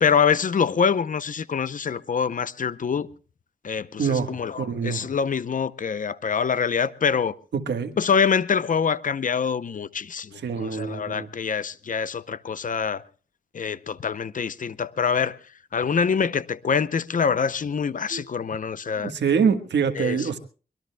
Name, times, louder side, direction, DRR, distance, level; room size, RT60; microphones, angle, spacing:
voice 1, 0.0-3.1 3.6-7.3 8.0-13.0 13.5-15.4 15.7-19.1 20.0-20.3, left 6 dB, 50° left, 0.7 m, -25 dB
voice 2, 4.0-5.1 7.5-7.9 10.3-11.3 18.1-18.2 19.0-20.4, right 6 dB, 90° right, 1.4 m, -25 dB
23.5 x 21.5 x 2.2 m
wide cardioid pair, 110°, 17 cm